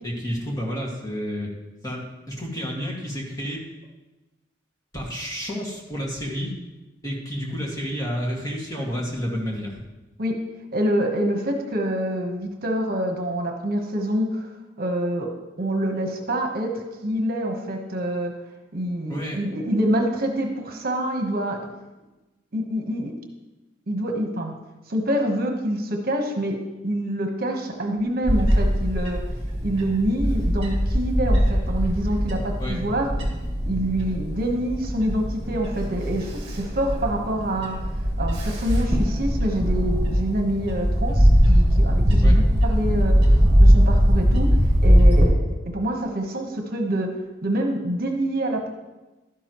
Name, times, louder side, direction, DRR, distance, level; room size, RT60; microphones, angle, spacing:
voice 1, 0.0-1.5 1.8-2.0 2.3-3.6 4.9-6.5 7.0-9.7 19.1-19.4 29.5-29.9 32.6-32.8 42.2-42.4, equal, 20° left, -2 dB, 2.0 m, -30 dB
voice 2, 10.7-14.5 14.8-15.3 15.6-18.3 18.7-21.6 22.5-23.1 23.9-24.6 24.9-29.2 29.6-33.1 33.6-37.8 38.2-43.2 43.6-47.1 47.4-48.7, right 1 dB, 55° right, 2 dB, 1.2 m, -26 dB
Bird / Wind, 28.3-45.3, equal, 30° right, 2.1 m, -20 dB
12.0 x 10.0 x 3.1 m, 1.1 s
head